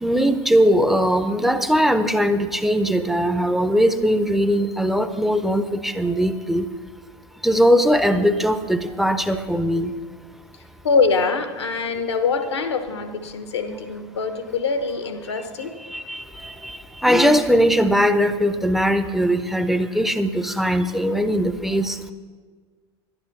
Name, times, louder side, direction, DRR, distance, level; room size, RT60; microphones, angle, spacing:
voice 1, 0.0-6.7 7.4-9.9 15.9-22.1, equal, ahead, 10 dB, 0.7 m, -20 dB
voice 2, 10.8-15.8, left 4 dB, 75° left, 9 dB, 1.1 m, -24 dB
11.5 x 10.0 x 5.9 m, 1.5 s
figure-of-eight pair, 80°, 14 cm